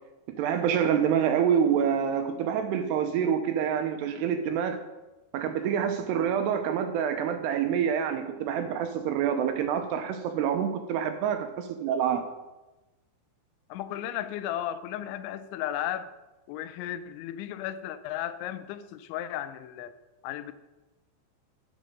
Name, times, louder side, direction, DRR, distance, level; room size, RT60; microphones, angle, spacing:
voice 1, 0.3-4.8 5.3-12.2, right 8 dB, 80° right, 7 dB, 2.6 m, -27 dB
voice 2, 13.7-16.1 16.5-19.9 20.2-20.5, left 11 dB, 85° left, 12 dB, 3.1 m, -34 dB
9.7 x 8.2 x 6.6 m, 1.1 s
omnidirectional pair, 5.3 m